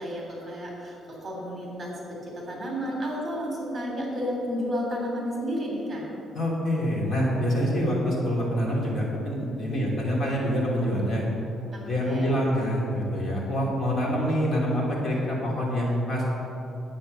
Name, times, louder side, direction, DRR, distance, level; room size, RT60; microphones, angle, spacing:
voice 1, 0.0-6.1 9.7-9.8 11.7-12.4 15.1-15.2, equal, 25° right, -2 dB, 3.1 m, -32 dB
voice 2, 6.3-11.3 11.8-16.2, equal, 35° left, -4 dB, 2.8 m, -26 dB
10.5 x 8.5 x 6.5 m, 2.9 s
cardioid pair, 135°, 0 cm